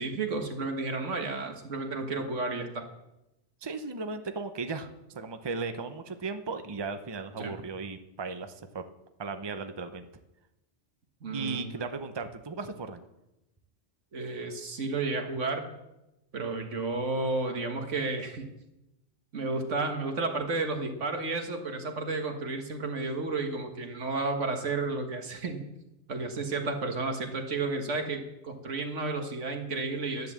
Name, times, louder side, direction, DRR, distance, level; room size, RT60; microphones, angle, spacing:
voice 1, 0.0-2.8 7.4-7.5 11.2-11.8 14.1-15.7 16.3-18.5 19.3-25.6 26.1-30.3, right 3 dB, 85° right, 5 dB, 1.9 m, -32 dB
voice 2, 3.6-8.8 9.2-10.1 11.3-13.0, right 4 dB, 25° right, 8 dB, 0.8 m, -36 dB
10.5 x 10.5 x 7.4 m, 0.92 s
omnidirectional pair, 1.2 m